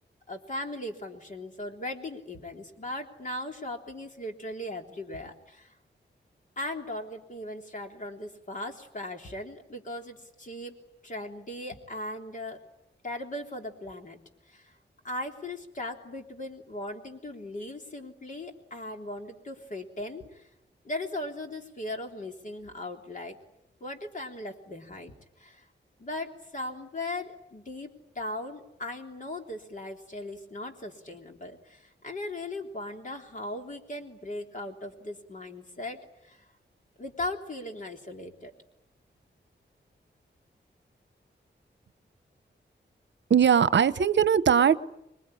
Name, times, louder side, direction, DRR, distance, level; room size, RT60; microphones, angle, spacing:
voice 1, 0.3-5.7 6.6-10.7 11.0-12.6 13.0-14.2 14.5-14.8 15.0-20.4 20.8-23.4 23.8-25.7 26.0-36.4 37.0-38.5, left 1 dB, 40° left, 3 dB, 3.4 m, -38 dB
voice 2, 43.3-44.8, right 8 dB, 70° right, 14 dB, 0.9 m, -20 dB
26.0 x 22.0 x 9.9 m, 0.86 s
wide cardioid pair, 165°, 19 cm